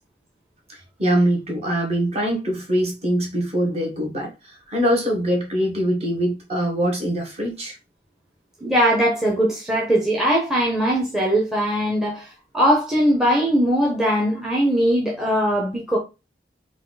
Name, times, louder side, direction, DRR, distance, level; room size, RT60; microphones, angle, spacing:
voice 1, 0.7-7.8, equal, 35° right, 1.5 m, -23 dB
voice 2, 8.6-16.0, equal, 5° right, 0.8 m, -20 dB
4.5 x 2.6 x 3.9 m
head